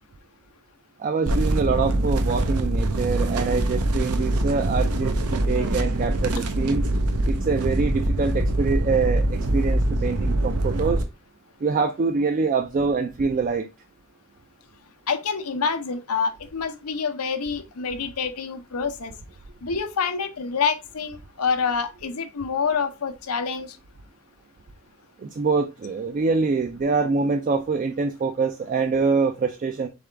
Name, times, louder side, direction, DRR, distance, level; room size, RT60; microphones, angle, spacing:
voice 1, 1.0-6.8 7.2-11.0 11.6-13.7 25.2-29.9, right 4 dB, 35° right, 0.3 m, -25 dB
sound 1, 1.3-11.0, right 1 dB, 90° right, 0.7 m, -24 dB
voice 2, 15.1-19.1 19.6-23.8, left 5 dB, 90° left, 0.7 m, -27 dB
3.8 x 3.5 x 3.3 m
head